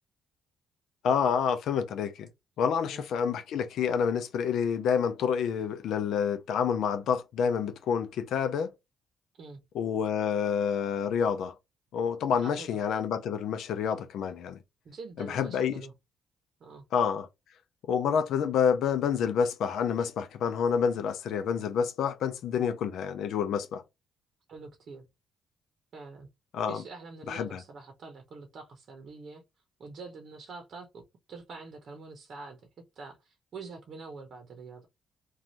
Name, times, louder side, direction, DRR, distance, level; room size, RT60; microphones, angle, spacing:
voice 1, 1.0-2.3 2.6-8.7 9.7-11.5 11.9-14.6 15.2-15.8 16.9-17.3 17.9-23.8 26.5-26.8 27.3-27.6, left 7 dB, 75° left, 0.5 m, -28 dB
voice 2, 12.4-12.8 14.8-15.9 16.6-16.8 24.5-25.1 25.9-26.3 26.7-29.4 29.8-32.6 33.0-34.9, right 4 dB, 55° right, 0.7 m, -45 dB
2.6 x 2.3 x 3.0 m
cardioid pair, 90°, 0 cm